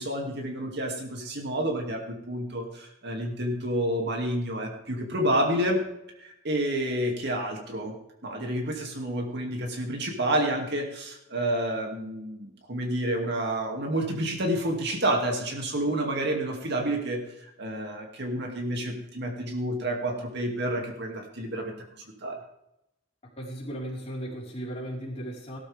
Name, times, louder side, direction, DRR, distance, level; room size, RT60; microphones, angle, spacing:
voice 1, 0.0-5.8 6.2-7.9 8.2-21.7 22.2-22.4, right 1 dB, 60° right, 2 dB, 2.5 m, -29 dB
voice 2, 23.4-25.6, equal, 35° left, -4 dB, 4.6 m, -36 dB
17.5 x 12.5 x 3.5 m, 0.81 s
head